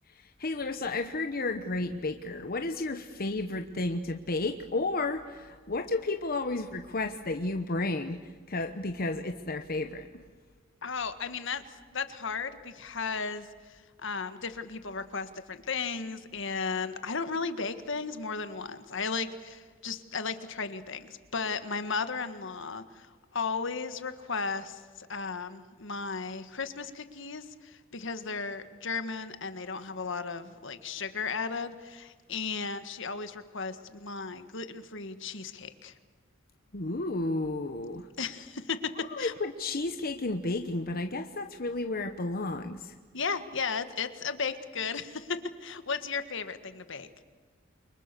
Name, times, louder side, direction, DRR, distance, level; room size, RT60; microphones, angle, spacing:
voice 1, 0.1-10.2 36.7-38.1 39.0-42.9, left 2 dB, 50° left, 6 dB, 1.1 m, -32 dB
voice 2, 10.8-11.6 11.9-23.1 23.3-35.9 38.2-39.3 43.1-47.1, left 5 dB, 65° left, 10 dB, 1.7 m, -35 dB
29.5 x 24.5 x 6.9 m, 1.5 s
head